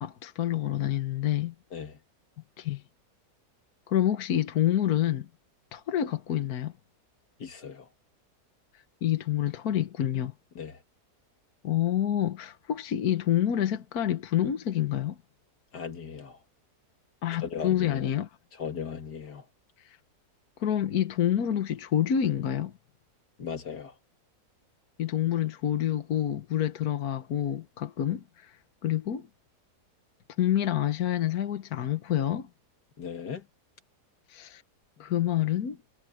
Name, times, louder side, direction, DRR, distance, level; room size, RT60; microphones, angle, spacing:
voice 1, 0.0-1.5 2.6-2.8 3.9-5.3 5.7-6.7 9.0-10.3 11.6-15.2 17.2-18.3 19.8-20.0 20.6-22.7 25.0-28.6 28.8-29.3 30.4-32.5 34.3-34.6 35.0-35.8, left 11 dB, 70° left, 1.6 m, -27 dB
voice 2, 7.4-7.9 10.6-10.8 15.7-16.4 17.4-18.1 18.6-19.5 23.4-23.9 33.0-33.4 35.0-35.1, left 7 dB, 85° left, 2.6 m, -37 dB
omnidirectional pair, 1.7 m